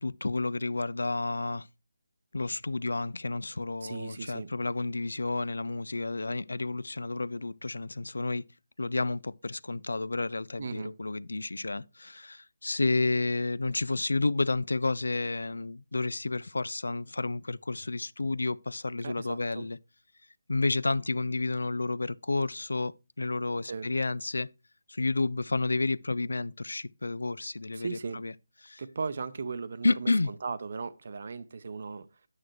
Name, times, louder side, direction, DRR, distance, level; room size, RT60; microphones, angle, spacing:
voice 1, 0.0-1.7 2.3-8.4 8.8-19.8 20.5-24.5 24.9-28.3 28.6-28.8 29.8-30.3, left 3 dB, 85° left, 0.3 m, -31 dB
voice 2, 3.8-4.5 10.6-11.0 19.0-19.7 23.6-23.9 27.7-28.2 28.8-32.1, right 4 dB, 50° right, 0.6 m, -37 dB
9.0 x 6.3 x 3.0 m
figure-of-eight pair, 165°, 0 cm